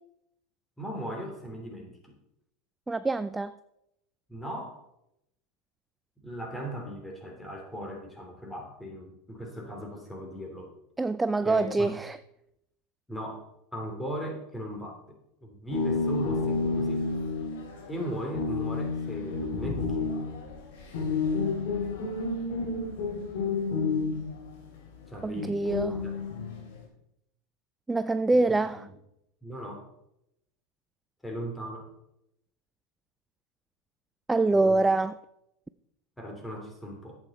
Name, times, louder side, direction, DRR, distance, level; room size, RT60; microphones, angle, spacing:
voice 1, 0.8-2.1 4.3-4.8 6.2-10.7 11.4-11.9 13.1-13.4 13.7-15.0 15.4-17.0 17.9-20.0 25.1-25.6 26.0-26.5 28.3-28.4 28.8-28.9 29.4-29.9 31.2-31.9 34.5-34.8 36.2-37.2, equal, 10° left, 3.3 m, -38 dB
voice 2, 2.9-3.5 11.0-12.2 25.2-26.0 27.9-28.9 34.3-35.2, right 3 dB, 10° right, 0.4 m, -25 dB
sound 1, 15.7-24.6 25.4-26.7, left 4 dB, 70° left, 3.3 m, -30 dB
11.0 x 8.3 x 4.3 m
hypercardioid pair, 95°, 0 cm